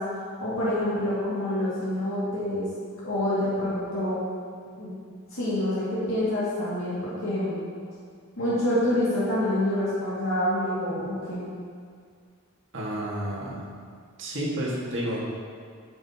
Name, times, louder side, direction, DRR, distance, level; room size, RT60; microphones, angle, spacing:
voice 1, 0.0-2.7 3.0-4.2 4.8-4.9 5.3-7.6 8.4-11.4, left 1 dB, 60° left, -10 dB, 2.1 m, -27 dB
voice 2, 12.7-13.7 14.2-15.2, right 1 dB, 60° right, -4 dB, 1.8 m, -30 dB
9.4 x 7.6 x 2.9 m, 2.1 s
head